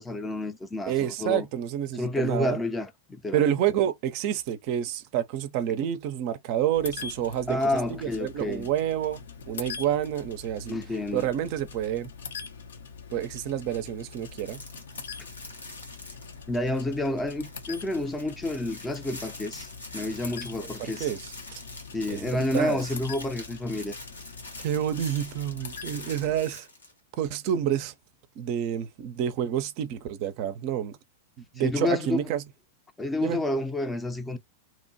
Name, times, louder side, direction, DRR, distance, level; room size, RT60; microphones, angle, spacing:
voice 1, 0.0-1.5 1.9-3.5 7.5-8.7 10.7-11.3 16.5-19.7 19.9-21.1 21.9-23.9 31.6-32.3 33.0-34.4, left 1 dB, 15° left, 0.5 m, -29 dB
voice 2, 0.9-2.6 3.3-7.6 8.0-9.2 9.5-10.8 11.1-12.1 13.1-14.6 20.6-21.2 22.1-22.8 24.6-26.7 27.2-27.9 28.4-31.0 31.6-32.4 33.2-33.4, right 10 dB, 50° right, 0.5 m, -28 dB
sound 1, 6.7-26.4, left 5 dB, 70° left, 0.6 m, -43 dB
sound 2, 14.1-16.7 17.0-17.1 17.4-26.9, left 2 dB, 85° left, 1.3 m, -45 dB
2.9 x 2.1 x 2.7 m
figure-of-eight pair, 95°, 0 cm